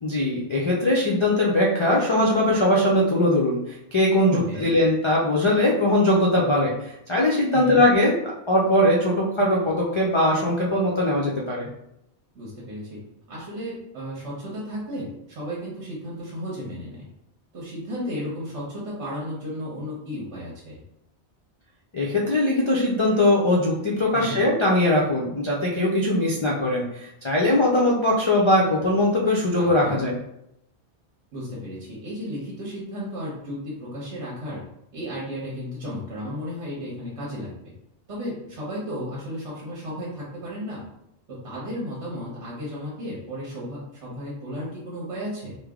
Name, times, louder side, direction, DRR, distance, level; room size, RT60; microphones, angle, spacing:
voice 1, 0.0-11.7 21.9-30.2, left 1 dB, 50° left, -4 dB, 0.3 m, -21 dB
voice 2, 4.3-4.7 7.5-7.8 12.3-13.0 13.3-17.1 17.5-20.8 24.1-24.4 29.6-30.0 31.3-34.6 34.9-37.7 38.1-40.8 41.3-45.6, equal, 80° right, -6 dB, 1.2 m, -34 dB
3.3 x 2.0 x 3.5 m, 0.80 s
omnidirectional pair, 1.2 m